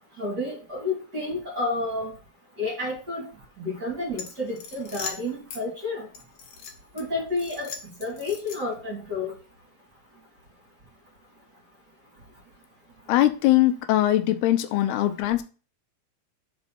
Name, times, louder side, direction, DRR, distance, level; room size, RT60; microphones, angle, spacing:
voice 1, 0.2-2.1 2.6-3.3 3.6-6.1 6.9-7.7 8.0-9.3, left 2 dB, 30° right, -3 dB, 2.3 m, -30 dB
sound 1, 4.1-5.6 6.1-7.0 7.4-8.8, left 6 dB, 65° left, 2.1 m, -39 dB
voice 2, 13.1-15.4, left 14 dB, 85° left, 9 dB, 2.7 m, -21 dB
5.4 x 5.3 x 5.8 m, 0.35 s
omnidirectional pair, 4.5 m